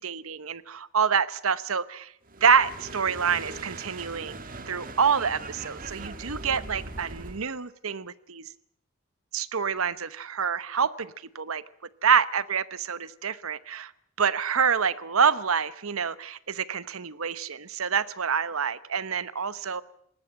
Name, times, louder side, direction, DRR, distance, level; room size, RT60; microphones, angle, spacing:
voice 1, 0.0-2.1 2.4-4.4 4.7-8.5 9.3-11.6 12.0-13.9 14.2-19.8, right 6 dB, 75° right, 17 dB, 1.0 m, -27 dB
sound 1, 2.3-7.5, right 2 dB, 40° right, 1.8 m, -40 dB
20.0 x 19.0 x 8.8 m, 0.69 s
head